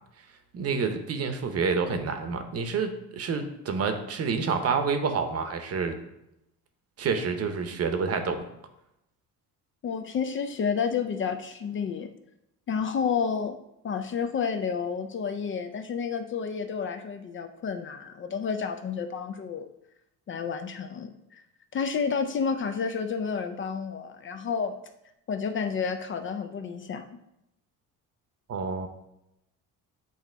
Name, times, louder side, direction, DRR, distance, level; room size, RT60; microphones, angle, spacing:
voice 1, 0.5-6.0 7.0-8.4 28.5-28.9, right 5 dB, 45° right, 7 dB, 0.8 m, -28 dB
voice 2, 9.8-12.1 12.7-13.6 13.8-19.7 20.3-21.4 21.7-24.7 25.3-27.0, left 6 dB, 35° left, 7 dB, 0.4 m, -30 dB
8.2 x 2.8 x 4.5 m, 0.84 s
cardioid pair, 125°, 35 cm